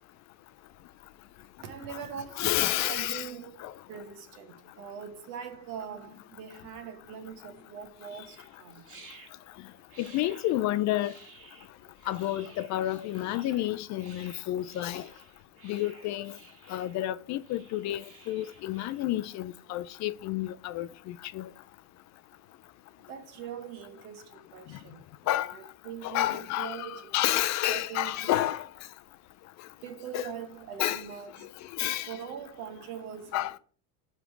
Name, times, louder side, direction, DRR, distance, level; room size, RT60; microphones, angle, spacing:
voice 1, 1.6-3.6 3.9-8.8 23.1-27.2 27.4-28.4 29.8-31.5 32.1-33.6, right 8 dB, 75° right, 1.4 m, -42 dB
voice 2, 2.4-3.3 3.6-3.7 10.0-11.1 12.1-15.0 15.6-16.4 16.7-21.5 25.3-25.5 26.0-28.7 30.1-30.3 30.8-31.0 31.8-32.2 33.3-33.5, left 14 dB, 45° left, 0.4 m, -30 dB
sound 1, 8.1-19.1, right 3 dB, 30° right, 1.7 m, -54 dB
5.3 x 5.1 x 4.6 m
supercardioid pair, 110°, 42 cm